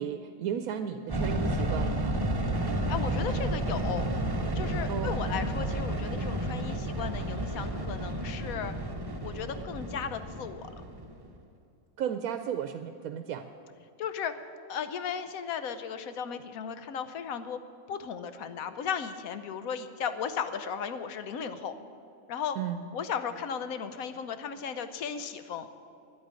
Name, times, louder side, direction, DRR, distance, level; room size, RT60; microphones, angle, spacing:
voice 1, 0.0-2.2 4.9-5.2 12.0-13.5 22.6-22.8, right 8 dB, 80° right, 9 dB, 1.0 m, -34 dB
sound 1, 1.1-11.3, right 1 dB, 20° right, 0.7 m, -31 dB
voice 2, 2.9-4.1 4.5-8.7 9.2-10.7 14.0-14.3 14.7-17.6 17.9-21.7 22.3-22.6 22.9-25.7, left 7 dB, 80° left, 10 dB, 1.2 m, -35 dB
10.5 x 8.7 x 9.5 m, 2.5 s
omnidirectional pair, 1.5 m